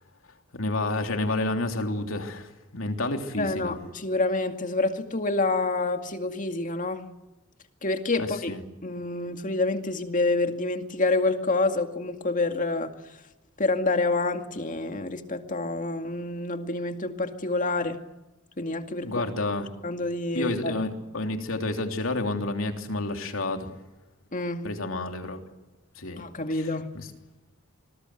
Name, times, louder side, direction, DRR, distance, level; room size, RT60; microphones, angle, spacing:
voice 1, 0.5-3.8 8.2-8.6 19.0-19.7 20.3-23.7 24.6-25.4 26.0-26.2 26.5-27.1, left 2 dB, 75° left, 3.3 m, -30 dB
voice 2, 3.4-7.1 7.8-8.6 8.8-12.9 13.6-18.0 18.6-19.2 19.8-20.8 24.3-24.6 26.2-26.9, left 2 dB, 40° left, 2.2 m, -27 dB
26.5 x 20.5 x 7.9 m
head